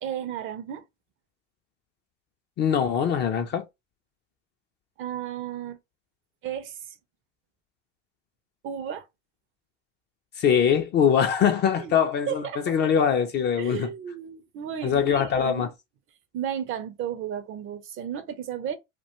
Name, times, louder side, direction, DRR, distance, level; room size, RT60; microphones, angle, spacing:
voice 1, 0.0-0.8 5.0-5.8 6.4-6.8 8.6-9.0 11.8-11.9 12.3-12.8 13.6-15.6 16.3-18.8, right 9 dB, 35° right, 0.4 m, -33 dB
voice 2, 2.6-3.7 10.4-13.9 14.8-15.7, left 8 dB, 30° left, 0.4 m, -23 dB
2.3 x 2.2 x 2.8 m
hypercardioid pair, 90°, 36 cm